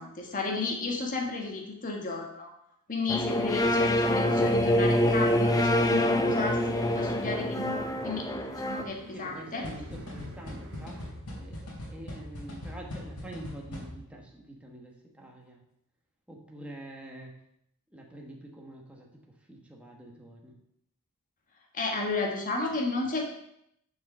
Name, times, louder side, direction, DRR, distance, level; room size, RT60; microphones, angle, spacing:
voice 1, 0.0-2.5 2.9-8.3 8.6-9.7 21.7-23.3, left 3 dB, 40° left, 0 dB, 1.4 m, -33 dB
sound 1, 3.1-8.8, left 1 dB, 15° left, 0.6 m, -25 dB
sound 2, 4.8-11.1, right 1 dB, 60° right, 1.1 m, -47 dB
voice 2, 9.1-11.1 11.3-15.6 16.3-17.3 17.9-19.1 19.5-20.6, right 1 dB, 5° right, -1 dB, 1.3 m, -46 dB
sound 3, 9.6-14.2, left 1 dB, 85° left, 3.2 m, -41 dB
7.0 x 4.9 x 6.4 m, 0.76 s
head